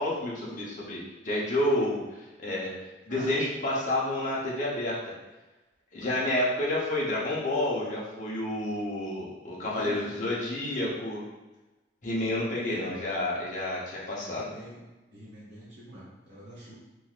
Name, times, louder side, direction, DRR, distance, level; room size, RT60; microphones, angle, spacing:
voice 1, 0.0-2.7 3.1-5.0 5.9-11.2 12.0-14.5, left 1 dB, 40° left, -5 dB, 0.8 m, -29 dB
voice 2, 9.7-10.2 12.5-12.9 14.1-14.8 15.1-16.7, right 1 dB, 70° right, -8 dB, 1.0 m, -45 dB
3.7 x 2.9 x 2.4 m, 1.1 s
head